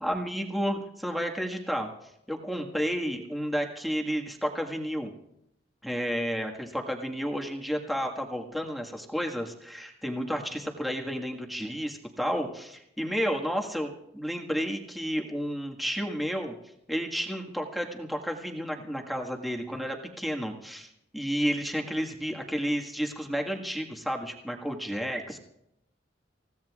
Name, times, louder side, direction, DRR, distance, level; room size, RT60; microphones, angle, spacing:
voice 1, 0.0-1.9 2.3-5.1 5.8-16.5 16.9-25.4, equal, ahead, 1 dB, 1.7 m, -31 dB
28.5 x 16.5 x 2.5 m, 0.81 s
head